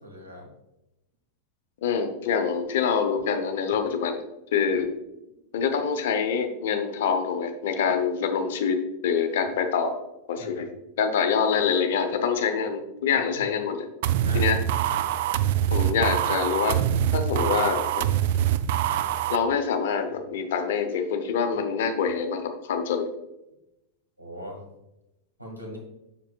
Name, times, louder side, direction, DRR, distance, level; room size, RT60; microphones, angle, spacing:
voice 1, 0.0-0.5 9.4-9.5 10.4-10.7 13.4-13.5 14.3-14.8 24.2-24.6 25.4-25.8, equal, 90° right, -1 dB, 1.8 m, -41 dB
voice 2, 1.8-4.2 4.5-4.9 5.5-10.0 10.3-10.7 11.0-13.9 14.3-14.6 15.7-16.8 17.1-18.1 19.3-23.1, left 6 dB, 55° left, 7 dB, 0.8 m, -25 dB
sound 1, 14.0-19.4, right 11 dB, 50° right, 0.3 m, -24 dB
7.2 x 6.2 x 2.3 m, 0.90 s
figure-of-eight pair, 90°, 0 cm